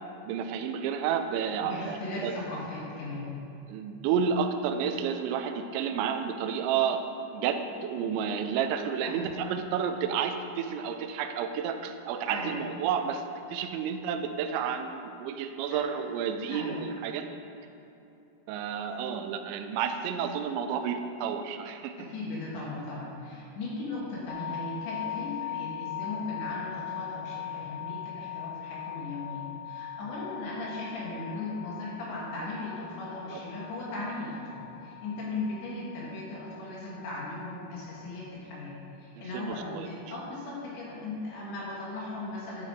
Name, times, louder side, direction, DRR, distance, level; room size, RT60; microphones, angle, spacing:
voice 1, 0.3-2.3 3.7-7.0 7.3-13.2 13.5-17.3 18.5-21.9 33.3-33.4 39.3-39.9, right 7 dB, 85° right, 7 dB, 2.7 m, -31 dB
voice 2, 1.6-3.3 9.0-9.2 12.3-12.5 15.7-15.8 16.5-16.8 22.0-42.7, left 2 dB, 70° left, -5 dB, 3.4 m, -37 dB
sound 1, 24.3-38.3, left 11 dB, 85° left, 3.2 m, -40 dB
11.5 x 7.9 x 3.6 m, 2.9 s
omnidirectional pair, 5.8 m